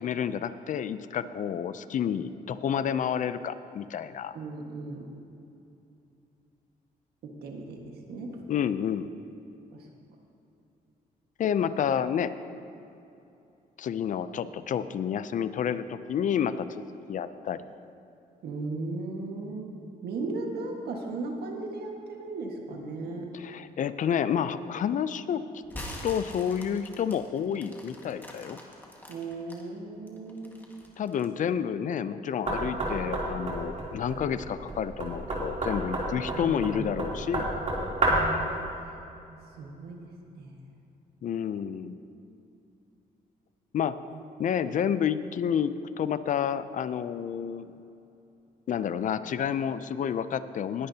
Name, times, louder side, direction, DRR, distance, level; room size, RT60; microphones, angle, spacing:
voice 1, 0.0-4.4 8.5-9.1 11.4-12.4 13.8-16.8 17.1-17.6 23.3-25.4 25.8-28.6 31.0-37.5 41.2-42.0 43.7-44.1 44.4-47.7 48.7-50.9, left 8 dB, 55° left, 13 dB, 0.5 m, -29 dB
voice 2, 4.3-5.2 7.2-8.4 9.7-9.9 18.4-19.7 20.0-23.4 29.1-30.7 36.4-36.9 38.1-38.9 39.6-40.7 44.1-44.2 44.6-44.8, right 3 dB, 85° right, 1 dB, 1.6 m, -37 dB
sound 1, 25.6-29.6 30.1-31.4, left 1 dB, 10° left, 1.7 m, -43 dB
Knock, 32.5-38.4, right 1 dB, 45° right, 3.1 m, -30 dB
20.0 x 10.5 x 2.8 m, 2.8 s
cardioid pair, 115°, 16 cm